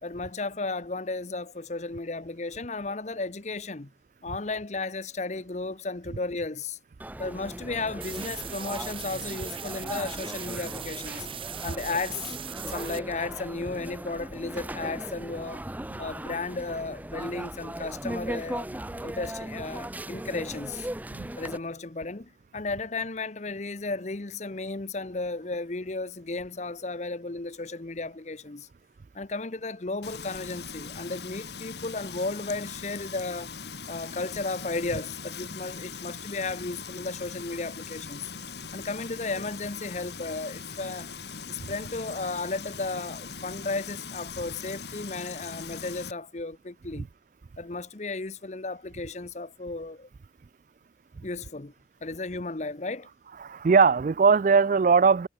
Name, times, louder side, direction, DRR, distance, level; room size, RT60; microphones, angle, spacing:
voice 1, 0.0-3.9 4.2-6.8 7.2-11.3 11.6-12.3 12.7-15.6 16.0-18.7 19.0-20.9 21.4-28.7 29.1-33.5 33.9-38.3 38.7-41.1 41.5-47.1 47.6-50.1 51.2-51.7 52.0-53.1, left 3 dB, 40° left, 0.8 m, -34 dB
sound 1, 7.0-21.6, right 1 dB, 10° right, 0.7 m, -38 dB
sound 2, 8.0-13.0, right 9 dB, 30° right, 2.8 m, -39 dB
Frying (food), 30.0-46.1, left 5 dB, 65° left, 2.7 m, -40 dB
voice 2, 53.4-55.3, right 5 dB, 45° right, 0.3 m, -20 dB
head